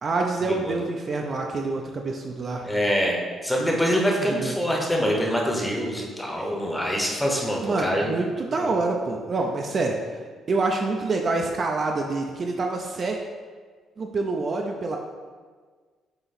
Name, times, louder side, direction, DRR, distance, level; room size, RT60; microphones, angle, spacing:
voice 1, 0.0-2.7 3.6-3.8 4.2-4.6 7.6-10.2 10.5-13.2 14.0-15.0, right 3 dB, 35° right, 1 dB, 0.4 m, -27 dB
voice 2, 2.6-8.1 8.5-8.7, equal, 5° left, -1 dB, 0.9 m, -25 dB
7.7 x 2.9 x 4.1 m, 1.5 s
cardioid pair, 150°, 0 cm